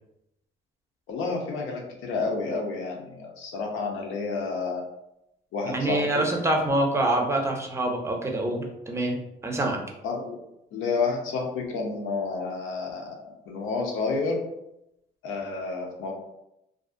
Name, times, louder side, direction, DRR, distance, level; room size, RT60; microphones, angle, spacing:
voice 1, 1.1-4.8 5.5-6.2 10.0-10.4 10.7-14.4 15.2-16.1, left 4 dB, 85° left, 1 dB, 0.6 m, -30 dB
voice 2, 5.6-9.8, right 1 dB, 15° right, 1 dB, 0.5 m, -26 dB
2.4 x 2.1 x 2.5 m, 0.85 s
cardioid pair, 90°, 20 cm